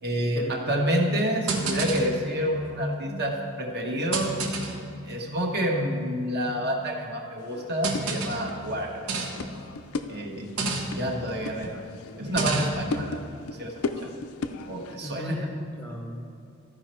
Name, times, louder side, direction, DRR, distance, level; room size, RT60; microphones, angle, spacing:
voice 1, 0.0-4.3 5.1-9.1 10.1-10.5 10.9-11.7 12.2-13.2 13.5-13.7 14.0-14.1 14.7-15.5, equal, 50° right, 0 dB, 1.2 m, -28 dB
sound 1, 1.5-2.2 3.1-3.4 4.1-4.9 5.8-5.9 7.8-8.5 9.1-9.5 10.4-11.2 12.2-12.9, right 3 dB, 85° right, 1.3 m, -29 dB
sound 2, 7.4-15.0, left 3 dB, 75° left, 0.5 m, -37 dB
voice 2, 15.0-16.2, equal, 5° left, 0 dB, 0.6 m, -36 dB
13.5 x 5.2 x 4.4 m, 2.6 s
head